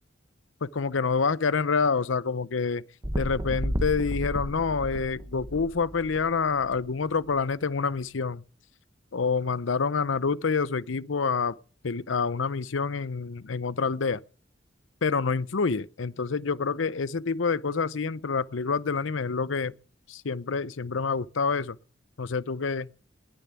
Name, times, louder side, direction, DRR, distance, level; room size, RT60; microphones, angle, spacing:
voice 1, 0.6-2.8 3.2-8.4 9.1-11.6 11.8-14.2 15.0-19.7 20.1-21.8 22.2-22.9, left 5 dB, 70° left, 0.7 m, -27 dB
sound 1, 3.0-6.8 7.4-7.5, equal, 20° right, 1.3 m, -32 dB
20.5 x 6.9 x 9.1 m
head